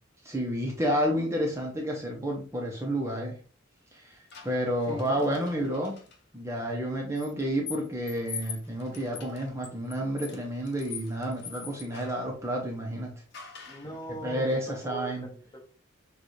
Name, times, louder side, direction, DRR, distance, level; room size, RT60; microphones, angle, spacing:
voice 1, 0.2-3.4 3.9-4.2 4.4-6.0 6.3-13.1 14.1-15.2, equal, 15° right, 0.7 m, -30 dB
sound 1, 4.3-6.2 7.2-12.3 13.3-14.0, left 7 dB, 55° left, 0.9 m, -43 dB
voice 2, 4.9-5.2 13.7-15.6, equal, 25° left, 1.2 m, -41 dB
6.4 x 2.4 x 3.2 m
head